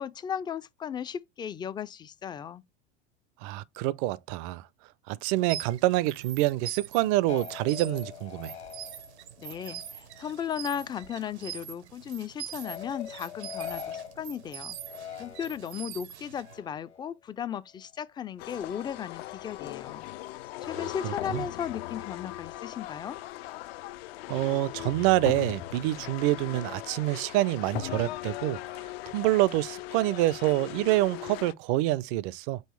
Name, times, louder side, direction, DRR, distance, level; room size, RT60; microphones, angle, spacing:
voice 1, 0.0-2.6 9.4-14.8 15.2-20.1 20.6-23.2, left 8 dB, 15° left, 0.3 m, -36 dB
voice 2, 3.4-4.7 5.1-8.5 20.7-21.5 24.3-28.6 29.1-32.6, right 17 dB, 50° right, 0.5 m, -27 dB
sound 1, 5.3-16.6, right 11 dB, 80° right, 0.8 m, -43 dB
sound 2, 7.3-10.5 10.8-11.6 12.6-15.9 16.4-17.1, left 9 dB, 85° left, 1.1 m, -43 dB
sound 3, 18.4-31.5, left 16 dB, 65° left, 0.5 m, -39 dB
5.6 x 2.9 x 3.1 m
hypercardioid pair, 90°, 33 cm